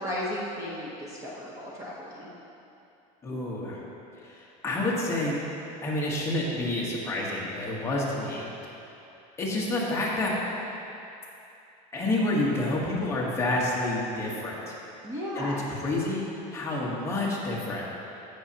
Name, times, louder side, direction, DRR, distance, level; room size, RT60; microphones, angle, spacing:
voice 1, 0.0-2.3 15.0-15.6, left 1 dB, 15° right, -5 dB, 0.9 m, -34 dB
voice 2, 3.2-3.8 4.2-5.4 5.8-8.5 9.4-10.4 11.9-14.7 15.3-16.2 16.5-17.9, left 2 dB, 15° left, -5 dB, 1.2 m, -29 dB
15.5 x 6.4 x 2.8 m, 2.7 s
cardioid pair, 165°, 18 cm